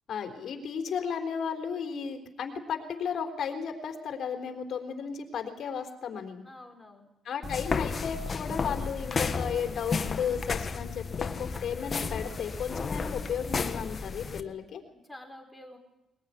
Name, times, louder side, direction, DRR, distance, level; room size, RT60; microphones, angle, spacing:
voice 1, 0.1-6.4 7.2-14.8, left 7 dB, 65° left, 5 dB, 3.9 m, -34 dB
voice 2, 6.4-7.1 14.9-15.8, left 1 dB, 5° left, 3 dB, 5.4 m, -48 dB
sound 1, 7.4-14.4, left 5 dB, 40° left, 1.5 m, -32 dB
21.5 x 21.0 x 9.9 m, 0.93 s
cardioid pair, 90°, 0 cm